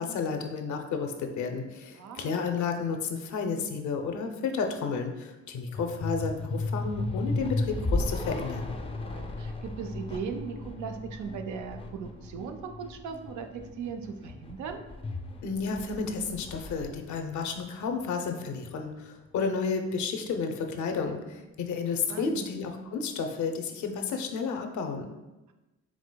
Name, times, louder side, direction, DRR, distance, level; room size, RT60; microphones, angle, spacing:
voice 1, 0.0-8.7 15.4-25.1, left 5 dB, 70° left, 4 dB, 0.6 m, -32 dB
voice 2, 2.0-2.4 9.0-14.8 22.1-22.5, right 6 dB, 75° right, 6 dB, 0.5 m, -38 dB
sound 1, 5.7-18.3, left 2 dB, 20° left, 0.5 m, -35 dB
4.8 x 3.6 x 2.2 m, 1.0 s
cardioid pair, 90°, 30 cm